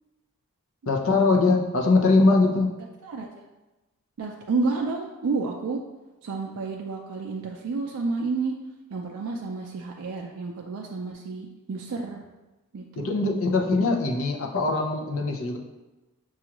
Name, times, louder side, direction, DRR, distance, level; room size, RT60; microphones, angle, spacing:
voice 1, 0.9-2.7 13.0-15.6, left 3 dB, 65° left, 1 dB, 0.6 m, -22 dB
voice 2, 4.2-5.8 6.2-8.5 8.9-12.2 12.7-13.1, right 4 dB, 75° right, 0 dB, 0.4 m, -30 dB
6.0 x 2.4 x 2.9 m, 1.1 s
head